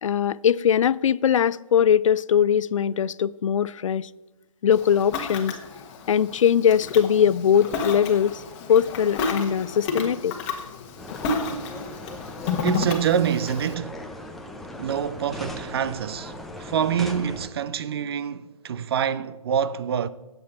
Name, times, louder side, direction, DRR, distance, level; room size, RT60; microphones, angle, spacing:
voice 1, 0.0-4.1 4.6-5.6 6.1-8.4 8.7-10.4, left 8 dB, 60° left, 0.4 m, -21 dB
Ocean, 4.7-13.7, left 4 dB, 25° left, 1.4 m, -31 dB
sound 1, 11.0-17.5, left 1 dB, ahead, 0.5 m, -38 dB
voice 2, 12.6-14.0 14.8-20.1, right 8 dB, 45° right, 0.5 m, -26 dB
17.5 x 7.9 x 4.2 m
hypercardioid pair, 145°, 18 cm